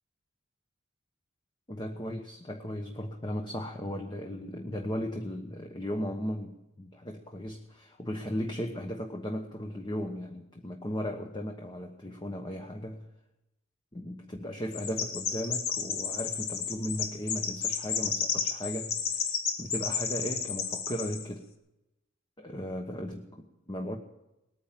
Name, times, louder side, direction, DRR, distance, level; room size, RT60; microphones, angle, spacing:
voice 1, 1.7-13.1 13.9-21.5 22.4-24.0, equal, 20° left, 3 dB, 1.1 m, -36 dB
Chirp tweet, 14.7-21.2, left 6 dB, 70° left, 1.8 m, -32 dB
20.0 x 9.4 x 7.4 m, 0.95 s
head